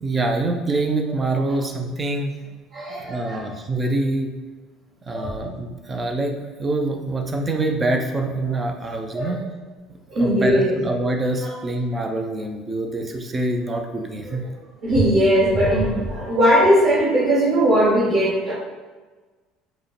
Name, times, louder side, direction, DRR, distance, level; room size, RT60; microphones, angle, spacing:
voice 1, 0.0-2.4 3.1-4.3 5.0-9.4 10.2-14.4, right 2 dB, 15° right, 3 dB, 0.4 m, -25 dB
voice 2, 2.7-3.4 5.1-5.4 9.1-9.4 10.1-10.8 11.4-11.5 14.3-14.4 14.8-18.5, equal, 45° right, -9 dB, 1.1 m, -19 dB
4.7 x 2.1 x 3.2 m, 1.3 s
cardioid pair, 170°, 0 cm